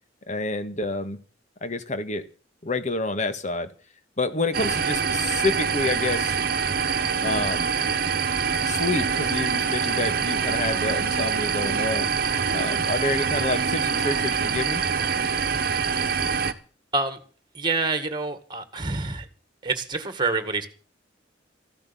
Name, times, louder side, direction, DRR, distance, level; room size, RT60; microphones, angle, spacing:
voice 1, 0.3-1.2 1.6-2.3 2.6-3.7 4.2-6.4 7.2-7.7 8.6-12.1 12.5-14.8, left 2 dB, 40° left, 1.6 m, -28 dB
sound 1, 4.5-16.5, right 6 dB, 55° right, 1.2 m, -25 dB
voice 2, 17.5-19.3 19.6-20.7, right 3 dB, 25° right, 1.9 m, -27 dB
15.0 x 11.5 x 7.0 m
head